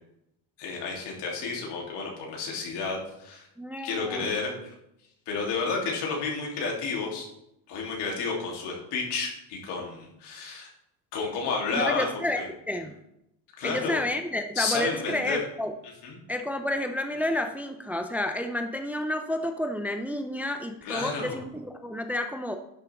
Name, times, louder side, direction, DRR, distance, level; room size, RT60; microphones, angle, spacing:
voice 1, 0.6-3.5 3.8-4.5 5.3-7.2 7.7-10.7 11.1-12.1 12.3-12.5 13.6-14.0 14.5-15.4 16.0-16.2 20.8-21.4, left 4 dB, 80° left, -2 dB, 3.0 m, -31 dB
voice 2, 3.6-4.3 11.7-12.9 13.6-15.7 16.3-22.6, left 1 dB, 5° right, 6 dB, 0.4 m, -30 dB
11.0 x 6.8 x 3.5 m, 0.81 s
cardioid pair, 145°, 41 cm